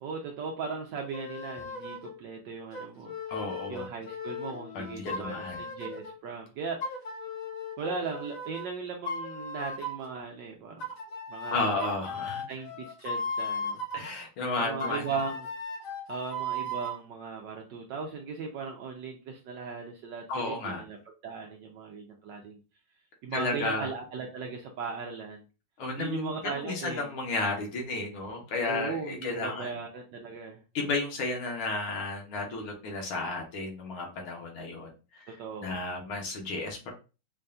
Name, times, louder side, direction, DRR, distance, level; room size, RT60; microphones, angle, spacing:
voice 1, 0.0-3.1 3.7-6.8 7.8-10.9 11.3-11.9 12.5-13.8 14.6-15.5 16.1-21.0 21.2-22.6 23.2-25.4 26.0-27.1 28.7-30.6 35.3-35.8, right 5 dB, 75° right, 2 dB, 1.1 m, -38 dB
sound 1, 1.1-2.1 2.7-6.1 6.8-8.7 9.1-10.1 10.8-14.1 14.8-17.0, left 2 dB, 55° left, 1.0 m, -37 dB
voice 2, 3.3-3.9 4.8-5.7 11.5-12.5 13.9-15.1 20.3-20.8 23.3-23.9 25.8-29.7 30.8-35.4 35.6-36.9, left 3 dB, 75° left, 1 dB, 1.8 m, -33 dB
5.4 x 2.5 x 2.3 m, 0.33 s
omnidirectional pair, 2.4 m